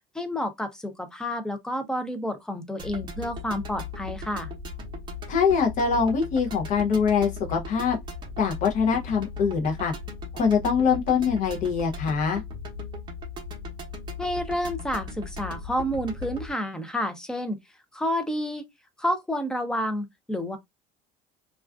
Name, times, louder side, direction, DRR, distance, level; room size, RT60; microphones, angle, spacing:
voice 1, 0.1-4.5 14.2-17.6 17.9-18.7 19.0-20.6, equal, 5° left, 0.4 m, -29 dB
sound 1, 2.8-16.5, left 3 dB, 30° right, 0.7 m, -37 dB
voice 2, 5.3-8.0 8.4-9.9 10.3-12.4, left 6 dB, 50° left, 0.6 m, -23 dB
2.3 x 2.3 x 2.3 m
cardioid pair, 135°, 16 cm